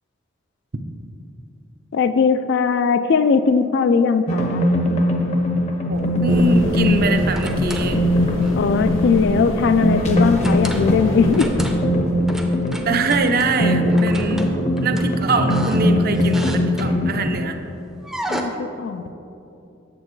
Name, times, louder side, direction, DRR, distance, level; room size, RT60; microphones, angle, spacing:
voice 1, 1.9-4.6 8.6-11.6 13.8-13.9 18.3-19.1, left 5 dB, 60° left, 11 dB, 0.3 m, -19 dB
sound 1, 4.3-17.3, left 1 dB, 35° left, 0.7 m, -20 dB
voice 2, 5.9-8.0 12.8-14.5 14.8-17.6, right 4 dB, 50° right, 6 dB, 0.5 m, -23 dB
sound 2, 6.0-6.4 7.0-8.0 8.4-8.7 10.3-10.9 11.3-12.0 12.3-13.5 13.9-17.2 18.0-18.4, right 1 dB, 5° right, 0.5 m, -33 dB
sound 3, 6.3-11.5, left 1 dB, 85° left, 0.8 m, -30 dB
8.6 x 7.3 x 3.1 m, 2.8 s
head